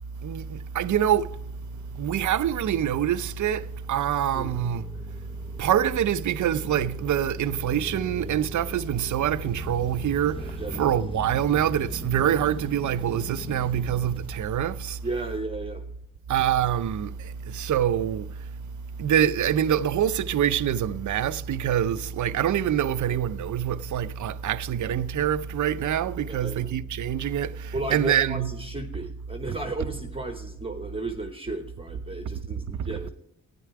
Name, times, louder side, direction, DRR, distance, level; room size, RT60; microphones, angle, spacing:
voice 1, 0.2-1.3 1.9-4.9 5.6-15.0 16.3-18.5 19.0-28.5 32.7-32.9, right 10 dB, 60° right, 0.6 m, -25 dB
sound 1, 1.2-15.1, left 3 dB, 15° left, 0.6 m, -41 dB
voice 2, 10.6-11.0 15.0-15.8 26.3-26.7 27.7-33.1, right 2 dB, 15° right, 1.0 m, -34 dB
12.5 x 9.5 x 4.7 m
cardioid pair, 85°, 35 cm